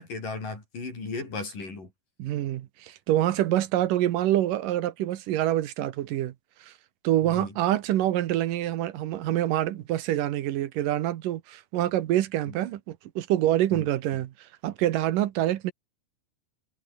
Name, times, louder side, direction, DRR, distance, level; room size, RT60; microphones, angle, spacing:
voice 1, 0.0-1.9 7.2-7.6 12.5-12.6 13.7-13.9, left 3 dB, 70° left, 9.5 m, -36 dB
voice 2, 2.2-6.3 6.6-6.7 7.0-14.3 14.6-15.7, right 13 dB, 75° right, 2.7 m, -26 dB
omnidirectional pair, 4.0 m